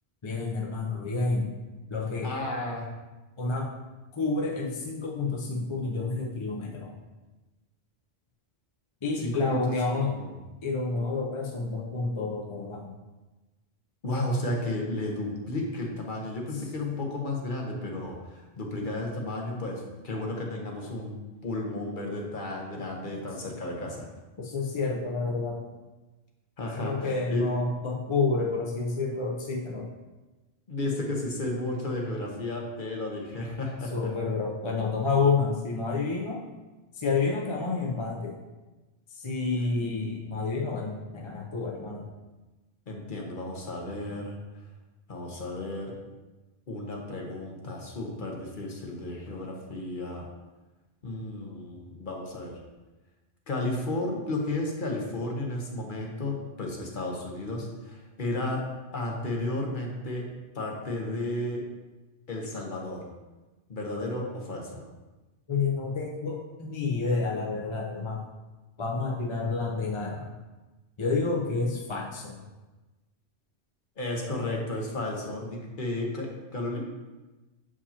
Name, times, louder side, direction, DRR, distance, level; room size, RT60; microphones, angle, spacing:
voice 1, 0.2-1.6 1.9-2.3 3.4-3.7 4.1-6.9 9.0-10.1 10.6-12.9 24.4-25.6 26.8-29.9 33.9-36.4 37.0-38.4 39.1-42.1 65.5-68.2 68.8-70.3 71.0-72.4, left 3 dB, 35° left, -2 dB, 0.6 m, -29 dB
voice 2, 2.2-2.9 9.2-9.6 9.9-10.3 14.0-24.1 26.6-27.4 30.7-34.1 42.9-44.4 45.1-46.0 46.7-50.3 51.0-52.6 53.5-58.6 58.9-60.3 60.5-61.6 62.3-63.1 63.7-64.9 74.0-76.9, left 2 dB, 50° left, -1 dB, 1.1 m, -33 dB
6.9 x 4.8 x 2.9 m, 1.1 s
omnidirectional pair, 1.1 m